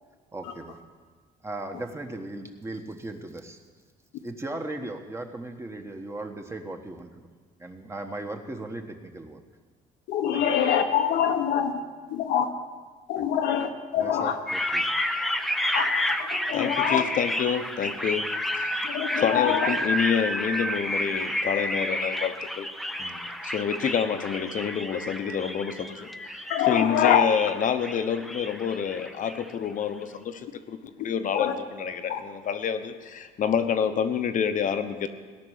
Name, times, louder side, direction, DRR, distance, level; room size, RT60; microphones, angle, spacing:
voice 1, 0.3-0.8 1.4-3.6 4.2-7.1 7.6-9.4 10.3-10.4 13.2-13.3 13.9-14.9, right 2 dB, 15° right, 4 dB, 1.3 m, -37 dB
voice 2, 10.1-11.7 12.1-12.5 13.1-14.4 15.7-15.9 16.3-17.0 18.8-19.7 26.5-27.3 31.3-31.5 32.1-32.2, left 9 dB, 90° left, 5 dB, 1.2 m, -24 dB
sound 1, 14.5-29.5, left 1 dB, ahead, 0.6 m, -30 dB
voice 3, 16.5-18.6 19.1-22.7 23.0-26.1 26.7-35.1, left 7 dB, 50° left, 8 dB, 1.0 m, -28 dB
17.5 x 6.1 x 9.4 m, 1.5 s
cardioid pair, 110°, 17 cm